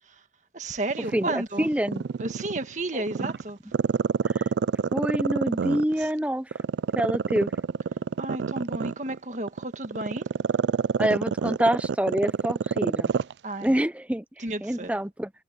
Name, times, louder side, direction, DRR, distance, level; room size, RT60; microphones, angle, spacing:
voice 1, 0.5-1.7 2.2-3.6 8.2-10.3 13.4-13.7 14.4-14.9, right 2 dB, 40° right, 1.7 m, -32 dB
Growling, 0.9-2.6 3.1-6.1 6.5-13.3 13.6-13.7, right 6 dB, 70° right, 0.3 m, -27 dB
voice 2, 1.1-2.0 2.9-3.3 4.4-4.5 4.9-6.5 7.0-7.5 11.0-13.1 13.6-14.2 14.6-15.3, right 1 dB, 5° right, 0.6 m, -26 dB
head